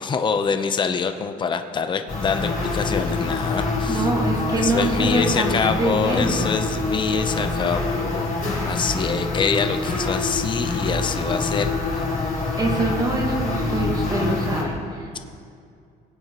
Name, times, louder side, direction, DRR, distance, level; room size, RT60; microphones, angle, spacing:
voice 1, 0.0-4.1 4.6-8.3 8.6-11.7, left 5 dB, 25° left, 7 dB, 0.7 m, -25 dB
sound 1, 2.1-14.6, left 3 dB, 45° left, 3.6 m, -25 dB
voice 2, 3.9-6.5 12.6-15.2, right 2 dB, 20° right, 0 dB, 1.6 m, -25 dB
21.0 x 9.6 x 3.0 m, 2.3 s
cardioid pair, 140°, 18 cm